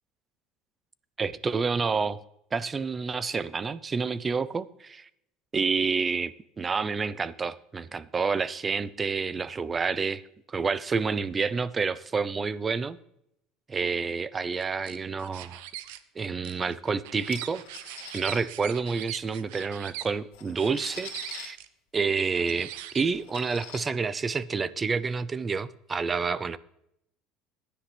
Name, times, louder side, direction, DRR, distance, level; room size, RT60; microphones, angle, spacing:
voice 1, 1.2-2.2 2.5-5.1 5.5-10.2 10.5-13.0 13.7-15.6 16.2-17.6 17.9-21.6 21.9-22.7 22.9-26.6, right 5 dB, 25° right, 17 dB, 0.6 m, -29 dB
sound 1, 14.6-16.0 16.4-20.1 20.6-21.7 22.3-23.4, right 13 dB, 85° right, 0.9 m, -41 dB
sound 2, 17.3-18.4 19.7-19.8 20.2-21.5 22.2-22.3 22.6-22.7 23.1-23.8, left 8 dB, 90° left, 2.2 m, -44 dB
16.0 x 10.0 x 3.4 m, 0.77 s
supercardioid pair, 115°, 0 cm